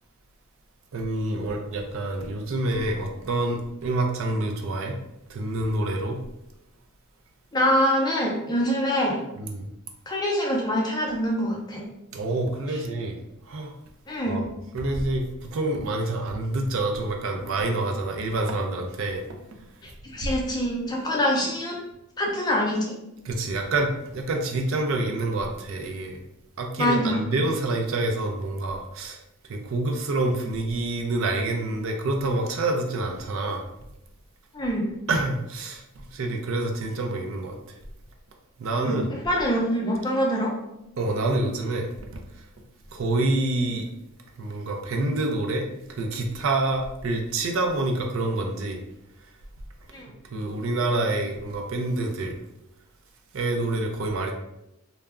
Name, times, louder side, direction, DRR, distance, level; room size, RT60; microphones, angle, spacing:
voice 1, 0.9-5.0 5.3-6.2 9.4-9.7 12.1-13.2 13.5-13.7 14.3-19.2 23.3-26.2 26.6-29.2 29.5-33.7 35.1-37.7 38.6-39.1 41.0-42.2 42.9-43.9 44.4-48.8 50.3-52.4 53.3-54.3, right 2 dB, 60° right, 3 dB, 0.4 m, -27 dB
voice 2, 7.5-9.2 10.1-11.8 12.7-12.8 14.1-14.4 20.0-21.8 22.2-22.9 26.8-27.2 34.5-34.9 38.8-40.5 49.9-50.1, equal, 20° left, -1 dB, 0.4 m, -25 dB
2.3 x 2.0 x 3.4 m, 0.86 s
head